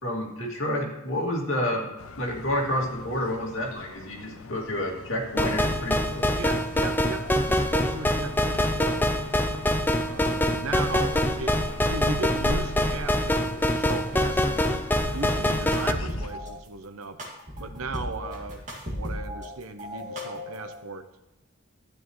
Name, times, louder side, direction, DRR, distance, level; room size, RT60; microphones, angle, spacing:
voice 1, 0.0-1.9 2.2-6.3, left 1 dB, 70° left, -2 dB, 2.5 m, -29 dB
sound 1, 2.0-16.4, left 3 dB, 85° left, 0.6 m, -42 dB
sound 2, 5.4-15.9, left 1 dB, 10° left, 0.4 m, -25 dB
voice 2, 6.3-9.2 10.0-14.8 15.1-17.2 17.6-21.1, right 3 dB, 85° right, 9 dB, 0.9 m, -36 dB
sound 3, 15.0-16.5 17.2-19.5 19.8-20.8, left 1 dB, 35° right, 2.3 m, -35 dB
12.5 x 9.5 x 3.2 m, 1.0 s
head